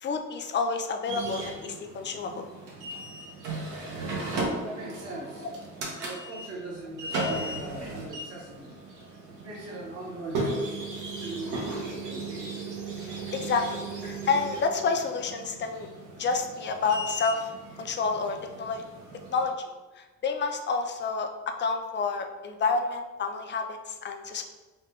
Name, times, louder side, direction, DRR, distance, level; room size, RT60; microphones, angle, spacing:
voice 1, 0.0-2.5 13.0-15.9 16.2-17.5 17.8-18.8 19.3-19.7 20.0-24.4, left 4 dB, 40° left, 5 dB, 0.4 m, -29 dB
sound 1, 1.1-19.4, right 2 dB, 85° right, 0.8 m, -36 dB
voice 2, 4.6-5.5 6.0-8.7 9.1-12.7, right 2 dB, 55° right, -5 dB, 0.9 m, -40 dB
3.2 x 2.2 x 2.9 m, 1.2 s
cardioid pair, 90°, 30 cm